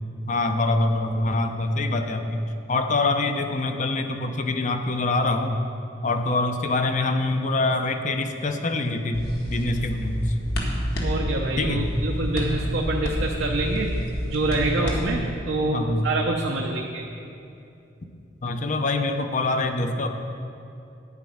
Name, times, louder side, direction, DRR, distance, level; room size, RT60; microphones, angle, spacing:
voice 1, 0.2-2.4 2.7-5.6 6.0-9.2 9.5-10.2 11.6-11.9 15.6-16.1 18.4-20.1, left 2 dB, 40° left, 6 dB, 0.7 m, -25 dB
sound 1, 9.1-15.2, equal, 55° left, 1.6 m, -28 dB
voice 2, 11.0-14.0 14.2-17.0, right 2 dB, 70° right, 0 dB, 0.8 m, -26 dB
11.0 x 5.3 x 8.6 m, 2.7 s
head